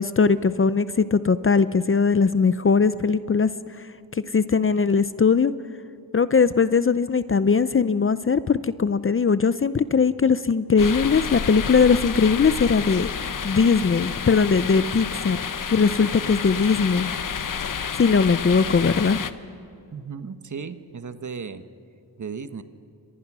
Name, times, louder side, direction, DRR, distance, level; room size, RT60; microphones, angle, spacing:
voice 1, 0.0-3.5 4.3-5.5 6.1-13.1 13.4-17.1 18.0-19.3, left 5 dB, 30° left, 14 dB, 0.6 m, -20 dB
sound 1, 10.8-19.3, left 6 dB, 50° left, 1.1 m, -30 dB
voice 2, 19.9-21.6 22.2-22.6, right 6 dB, 45° right, 10 dB, 1.2 m, -35 dB
30.0 x 26.0 x 6.2 m, 2.6 s
wide cardioid pair, 95°, 41 cm